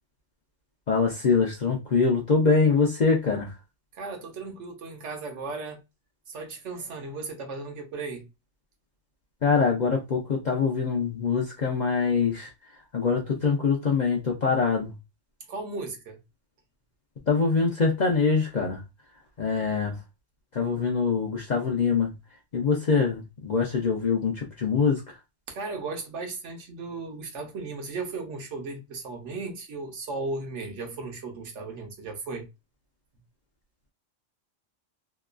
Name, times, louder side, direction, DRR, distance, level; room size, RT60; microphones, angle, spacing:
voice 1, 0.9-3.5 9.4-12.5 12.9-14.9 17.3-18.8 19.4-20.0 20.5-22.1 22.5-25.0, left 5 dB, 50° left, 0.5 m, -24 dB
voice 2, 3.9-5.8 6.3-8.3 15.5-16.2 25.5-32.5, right 3 dB, 70° right, 1.1 m, -36 dB
2.9 x 2.2 x 2.3 m
omnidirectional pair, 1.3 m